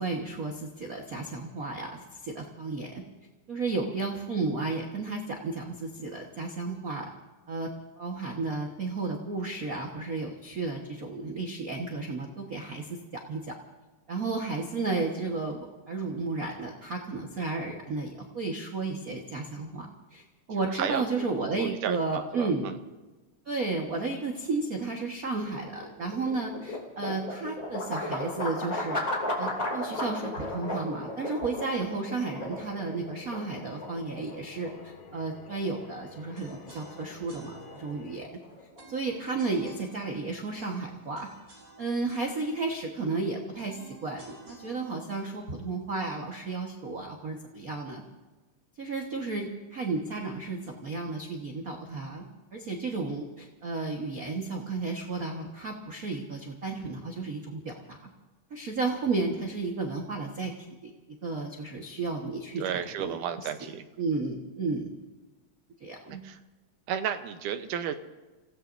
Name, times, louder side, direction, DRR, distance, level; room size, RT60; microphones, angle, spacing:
voice 1, 0.0-3.0 3.5-7.1 7.5-7.7 8.0-13.6 14.1-20.2 20.5-22.7 23.4-29.0 29.4-38.4 38.9-41.3 41.8-48.0 48.8-52.2 52.5-58.0 58.5-60.5 60.8-60.9 61.2-63.5 64.0-64.9 65.8-66.2, right 3 dB, 45° right, 1 dB, 1.2 m, -33 dB
voice 2, 20.7-21.3 21.6-22.8 62.6-63.9 66.2-66.4 66.9-68.0, right 9 dB, 85° right, 8 dB, 2.5 m, -33 dB
sound 1, 25.4-39.5, left 1 dB, 25° left, 3.1 m, -36 dB
sound 2, 32.5-38.3, left 4 dB, 65° left, 1.3 m, -51 dB
sound 3, 36.3-46.4, right 2 dB, 25° right, 5.1 m, -53 dB
30.0 x 17.0 x 2.7 m, 1.2 s
omnidirectional pair, 3.6 m